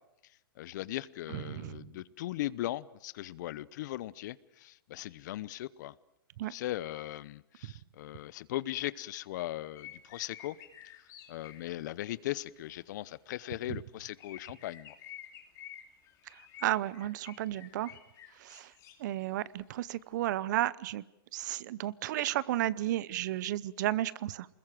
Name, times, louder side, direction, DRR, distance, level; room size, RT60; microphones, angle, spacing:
voice 1, 0.6-5.9 6.5-10.6 11.3-15.0, left 15 dB, 50° left, 21 dB, 0.8 m, -38 dB
voice 2, 1.3-1.9 6.4-6.5 7.6-7.7 16.3-17.9 18.4-18.7 19.0-21.0 21.3-24.5, right 14 dB, 50° right, 21 dB, 0.8 m, -33 dB
sound 1, 9.8-11.7 13.6-13.7 14.2-19.0 19.6-19.7 20.0-20.1, left 11 dB, 25° left, 2.9 m, -51 dB
25.0 x 21.0 x 7.6 m, 0.87 s
hypercardioid pair, 150°, 12 cm